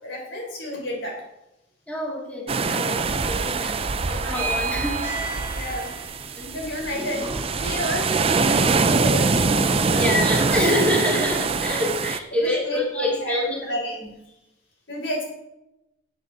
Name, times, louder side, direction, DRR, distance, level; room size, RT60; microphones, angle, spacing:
voice 1, 0.0-1.2 5.5-5.9 6.5-7.2 7.5-10.1 12.4-14.0 14.9-15.3, equal, 75° left, 0 dB, 3.9 m, -31 dB
voice 2, 1.9-3.8 4.1-5.1 6.4-6.6 9.9-13.6, left 1 dB, 5° left, -3 dB, 2.2 m, -26 dB
sound 1, 2.5-12.2, right 4 dB, 30° right, 0.5 m, -24 dB
sound 2, 4.3-10.9, right 2 dB, 15° right, 2.1 m, -35 dB
13.5 x 8.2 x 4.0 m, 0.91 s
head